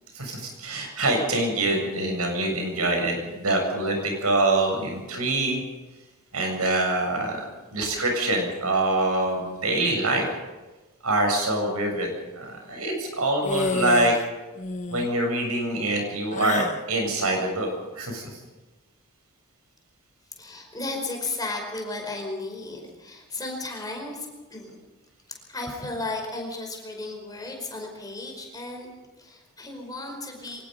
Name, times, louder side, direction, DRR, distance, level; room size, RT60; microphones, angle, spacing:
voice 1, 0.1-5.6 6.3-7.4 7.7-10.3 11.0-14.2 14.9-16.6 16.9-18.4, right 2 dB, 85° right, 2 dB, 7.4 m, -25 dB
sound 1, 13.4-14.2 14.5-15.1 16.3-16.8, left 3 dB, 35° left, 1.1 m, -29 dB
voice 2, 20.4-24.8 25.3-28.9 29.2-30.7, left 2 dB, 15° left, 2 dB, 5.0 m, -34 dB
24.5 x 19.5 x 5.4 m, 1.1 s
head